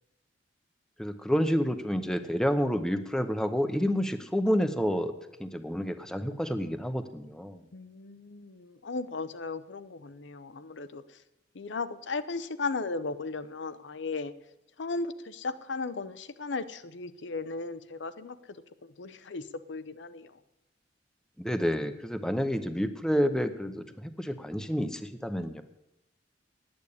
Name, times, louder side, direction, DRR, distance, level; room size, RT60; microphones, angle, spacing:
voice 1, 1.0-5.1 5.4-7.6 21.4-25.6, equal, 5° left, 8 dB, 0.7 m, -29 dB
voice 2, 7.7-11.2 11.5-14.3 14.8-18.4 18.8-20.4, left 3 dB, 85° left, 12 dB, 0.7 m, -36 dB
9.9 x 8.7 x 8.4 m, 0.89 s
head